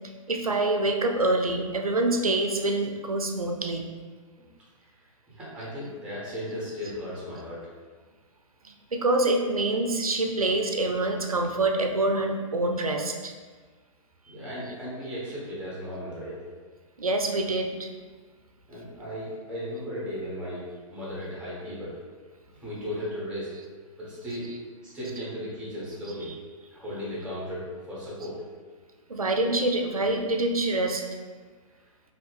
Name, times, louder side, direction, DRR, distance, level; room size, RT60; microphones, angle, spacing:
voice 1, 0.3-3.9 6.8-6.9 8.6-13.3 17.0-17.9 24.3-24.6 25.0-25.1 26.0-26.4 29.1-31.0, right 2 dB, 90° right, 4 dB, 0.4 m, -26 dB
voice 2, 5.3-7.6 14.3-16.4 18.7-20.6 20.9-22.0 22.6-23.5 24.0-24.5 24.9-26.3 26.7-28.4, equal, 5° right, -8 dB, 1.4 m, -36 dB
2.9 x 2.6 x 3.3 m, 1.4 s
figure-of-eight pair, 115°, 18 cm